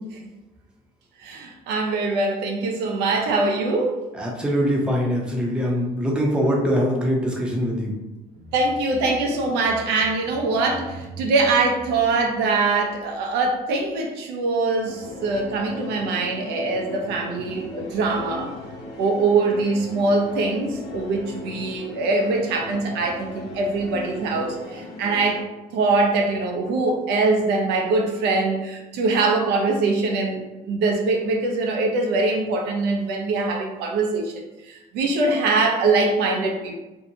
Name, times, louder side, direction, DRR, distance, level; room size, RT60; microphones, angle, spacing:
voice 1, 1.2-4.0 8.5-18.5 19.0-25.4 25.7-36.8, right 3 dB, 85° right, 2 dB, 0.5 m, -23 dB
voice 2, 4.1-8.0, equal, 5° right, -2 dB, 0.6 m, -23 dB
sound 1, 14.8-25.4, left 2 dB, 75° left, 0.5 m, -37 dB
2.6 x 2.1 x 2.7 m, 1.0 s
cardioid pair, 110°, 17 cm